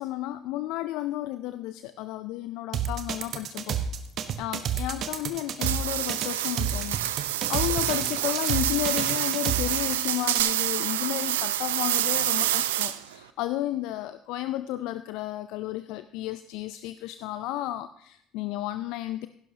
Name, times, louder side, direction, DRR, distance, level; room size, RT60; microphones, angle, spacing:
voice 1, 0.0-3.8 4.4-19.3, left 15 dB, 65° left, 12 dB, 0.4 m, -32 dB
sound 1, 2.7-10.4, right 8 dB, 50° right, 1.1 m, -30 dB
sound 2, 5.6-13.2, right 13 dB, 75° right, 0.5 m, -27 dB
16.5 x 11.5 x 2.8 m, 0.70 s
hypercardioid pair, 60°, 0 cm